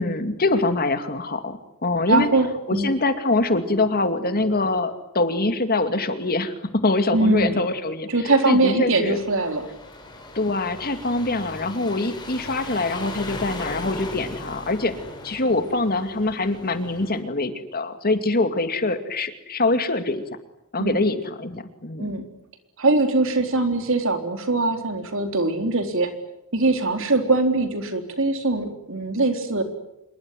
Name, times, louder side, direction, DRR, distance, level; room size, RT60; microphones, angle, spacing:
voice 1, 0.0-2.3 2.7-9.2 10.3-14.9 15.2-20.2 20.7-22.1, left 2 dB, 45° left, 8 dB, 2.4 m, -24 dB
voice 2, 2.1-2.9 7.1-7.6 8.1-9.6 20.8-21.0 22.0-22.2 22.8-26.1 26.5-29.6, right 2 dB, 60° right, 6 dB, 4.0 m, -22 dB
sound 1, 9.0-17.2, left 2 dB, 20° left, 6.3 m, -38 dB
27.0 x 22.5 x 9.3 m, 0.86 s
head